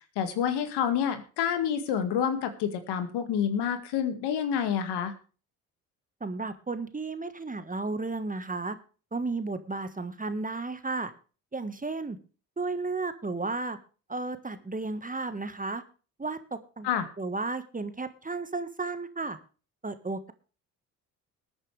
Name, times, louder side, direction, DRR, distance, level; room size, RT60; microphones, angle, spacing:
voice 1, 0.2-5.1 16.8-17.1, left 8 dB, 65° left, 8 dB, 2.1 m, -28 dB
voice 2, 6.2-8.7 9.1-11.1 11.5-12.2 12.6-13.8 14.1-15.8 16.2-16.9 17.2-19.4 19.8-20.3, right 3 dB, 20° right, 10 dB, 1.5 m, -33 dB
20.5 x 9.1 x 3.4 m, 0.37 s
hypercardioid pair, 50°, 43 cm